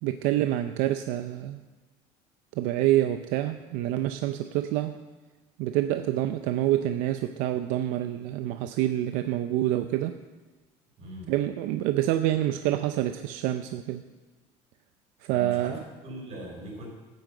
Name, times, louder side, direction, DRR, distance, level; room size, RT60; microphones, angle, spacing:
voice 1, 0.0-1.6 2.6-5.0 5.6-10.2 11.3-14.1 15.2-15.7, right 13 dB, 80° right, 9 dB, 0.6 m, -27 dB
voice 2, 11.0-11.3 15.3-16.9, right 1 dB, 50° right, 0 dB, 4.6 m, -39 dB
12.0 x 9.4 x 7.7 m, 1.3 s
cardioid pair, 155°, 13 cm